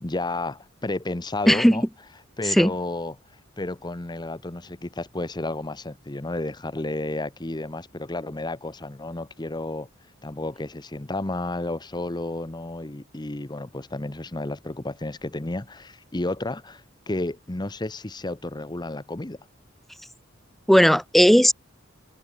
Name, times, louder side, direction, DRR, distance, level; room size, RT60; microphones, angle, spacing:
voice 1, 0.0-1.8 2.4-3.2 3.6-9.9 10.2-19.4, left 2 dB, 20° left, 0.9 m, -32 dB
voice 2, 1.5-1.8 2.4-2.7 20.7-21.5, equal, ahead, 0.4 m, -16 dB
head